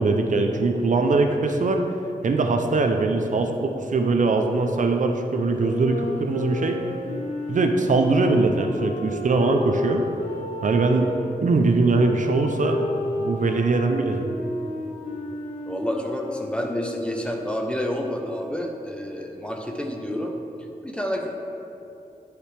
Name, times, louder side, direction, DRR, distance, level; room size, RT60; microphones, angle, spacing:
voice 1, 0.0-1.8 2.2-6.8 7.5-10.0 10.6-11.1 11.4-12.9 13.2-14.3, right 3 dB, 60° right, 4 dB, 0.5 m, -21 dB
sound 1, 5.6-11.2 11.9-17.4, left 1 dB, 60° left, 1.3 m, -32 dB
voice 2, 15.7-20.3 20.8-21.3, left 1 dB, 5° left, 1 dB, 0.8 m, -29 dB
11.5 x 5.0 x 3.3 m, 2.8 s
wide cardioid pair, 90°, 15 cm